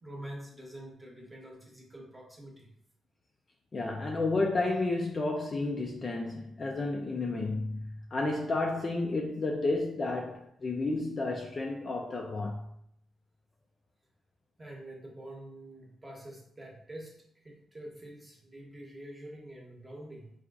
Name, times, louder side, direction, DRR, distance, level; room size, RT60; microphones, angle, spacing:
voice 1, 0.0-2.7 14.6-20.3, right 1 dB, 10° right, 0.9 m, -46 dB
voice 2, 3.7-12.6, left 2 dB, 30° left, 0.4 m, -31 dB
4.5 x 2.4 x 3.8 m
wide cardioid pair, 170°, 0 cm